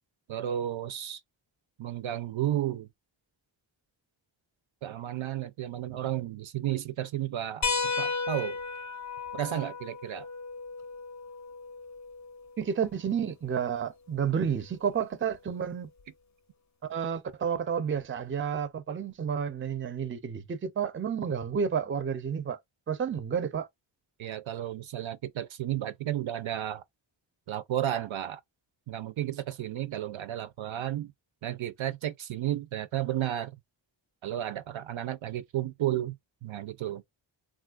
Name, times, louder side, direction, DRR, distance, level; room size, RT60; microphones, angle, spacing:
voice 1, 0.3-1.2 1.8-2.9 4.8-8.6 9.3-10.3 24.2-26.8 27.5-28.4 28.9-31.1 31.4-33.5 34.2-36.1 36.4-37.0, right 12 dB, 75° right, 0.5 m, -33 dB
sound 1, 7.6-12.7 14.2-14.3 16.0-16.1, left 4 dB, 40° left, 0.4 m, -34 dB
voice 2, 12.6-15.9 16.8-22.6 22.9-23.7, right 7 dB, 30° right, 0.4 m, -30 dB
3.7 x 2.4 x 2.3 m
wide cardioid pair, 105°, 47 cm